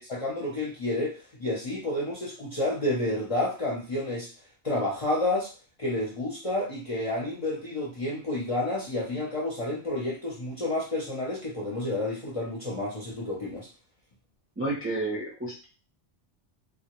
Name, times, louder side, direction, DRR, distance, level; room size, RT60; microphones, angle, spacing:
voice 1, 0.0-4.3 4.6-5.5 5.8-13.7, left 1 dB, 40° left, -5 dB, 0.5 m, -30 dB
voice 2, 14.6-15.6, right 2 dB, 20° right, -5 dB, 0.4 m, -31 dB
2.1 x 2.1 x 2.9 m, 0.35 s
omnidirectional pair, 1.2 m